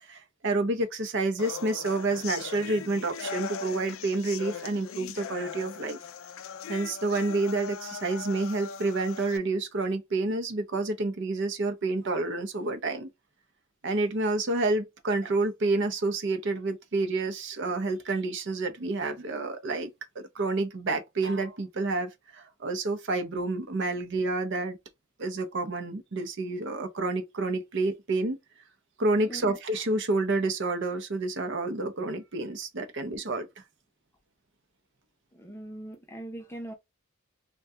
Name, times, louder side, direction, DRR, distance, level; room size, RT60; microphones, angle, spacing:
voice 1, 0.0-6.0 6.7-13.1 13.8-19.9 20.2-24.8 25.2-28.4 29.0-33.5, right 2 dB, 55° right, 0.6 m, -29 dB
sound 1, 1.4-9.4, left 7 dB, 65° left, 0.4 m, -40 dB
voice 2, 35.3-36.7, right 1 dB, 10° left, 0.6 m, -41 dB
2.7 x 2.3 x 3.3 m
head